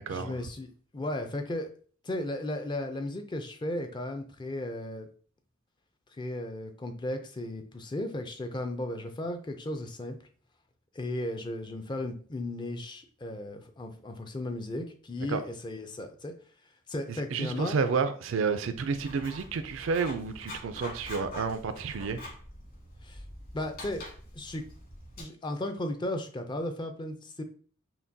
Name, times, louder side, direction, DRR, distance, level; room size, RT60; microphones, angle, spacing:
voice 1, 0.1-1.7 2.0-5.1 6.2-10.2 10.9-16.3 16.9-17.8 23.0-23.2 23.5-24.0 24.3-24.6 25.2-27.4, left 1 dB, 20° left, 0.4 m, -35 dB
voice 2, 17.3-22.2, right 5 dB, 70° right, 0.4 m, -30 dB
Writing, 18.7-25.2, left 1 dB, 50° left, 1.6 m, -45 dB
5.7 x 2.2 x 2.6 m
head